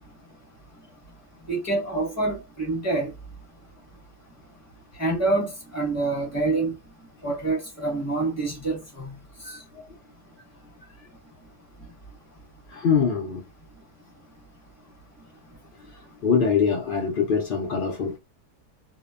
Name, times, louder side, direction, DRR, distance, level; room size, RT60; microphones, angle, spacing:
voice 1, 1.5-3.1 5.0-6.8 7.2-9.1 9.5-9.6, right 2 dB, 10° left, 1.1 m, -26 dB
voice 2, 12.7-13.4 16.2-18.2, left 6 dB, 80° left, 0.4 m, -23 dB
2.8 x 2.1 x 2.3 m
omnidirectional pair, 1.7 m